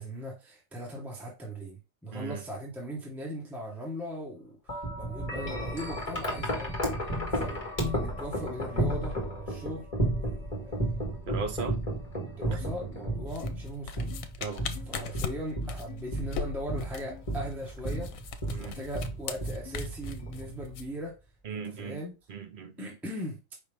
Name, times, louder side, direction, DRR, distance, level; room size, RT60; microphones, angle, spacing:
voice 1, 0.0-6.7 7.3-7.6 7.9-11.0 12.2-14.2 14.9-21.2 21.5-22.1 22.8-23.5, equal, ahead, 1.1 m, -39 dB
voice 2, 2.1-2.4 11.3-11.8 12.5-12.6 14.4-14.7 14.9-15.1 18.5-18.8 21.4-22.0 22.3-22.9, right 5 dB, 55° right, 0.6 m, -37 dB
Wind chime, 4.7-20.9, right 1 dB, 25° left, 1.7 m, -33 dB
sound 1, 12.6-12.8 13.4-13.5 14.1-14.2 14.7-15.0 15.9-16.1 17.1-17.2 17.9-18.1 18.8-18.9 19.6-19.8, left 11 dB, 65° left, 1.3 m, -48 dB
sound 2, 13.3-20.8, left 6 dB, 85° left, 1.1 m, -39 dB
5.1 x 3.0 x 3.4 m
omnidirectional pair, 1.4 m